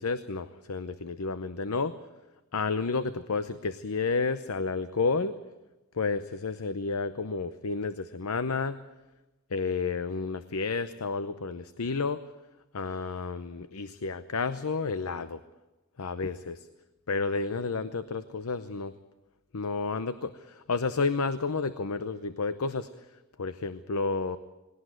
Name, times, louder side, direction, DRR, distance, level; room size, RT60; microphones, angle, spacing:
voice 1, 0.0-1.9 2.5-5.4 5.9-8.8 9.5-12.2 12.7-15.4 16.0-16.7 17.1-18.9 19.5-22.9 23.4-24.4, left 4 dB, 85° left, 12 dB, 0.8 m, -31 dB
20.0 x 18.0 x 9.1 m, 1.0 s
head